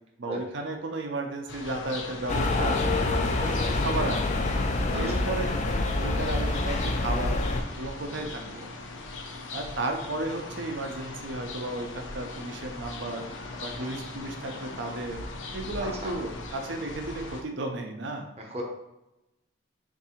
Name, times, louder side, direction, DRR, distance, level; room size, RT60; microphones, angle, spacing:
voice 1, 0.2-4.3 4.9-7.4 7.8-8.7 9.5-13.3 13.6-15.2 15.5-18.3, right 2 dB, 70° right, 4 dB, 0.6 m, -34 dB
sound 1, 1.5-17.4, left 3 dB, 85° left, 0.6 m, -40 dB
sound 2, 2.3-7.6, left 2 dB, 40° left, 0.4 m, -26 dB
voice 2, 4.9-5.2 8.0-8.3 13.8-13.9 15.8-16.1 18.4-18.6, right 1 dB, 35° right, 0 dB, 0.8 m, -39 dB
3.6 x 2.6 x 4.2 m, 0.93 s
head